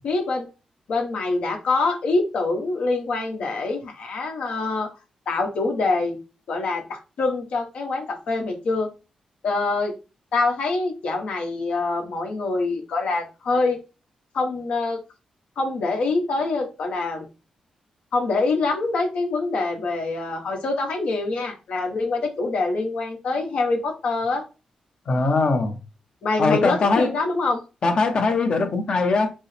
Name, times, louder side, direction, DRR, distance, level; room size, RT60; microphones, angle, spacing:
voice 1, 0.0-0.4 0.9-4.9 5.3-6.2 6.5-8.9 9.4-9.9 10.3-13.8 14.3-15.0 15.6-17.3 18.1-24.4 26.2-27.6, left 3 dB, 75° left, 1.2 m, -25 dB
voice 2, 25.1-25.8 26.4-27.1 27.8-29.3, left 3 dB, 50° left, 0.9 m, -21 dB
5.2 x 2.1 x 3.2 m
cardioid pair, 100°, 2 cm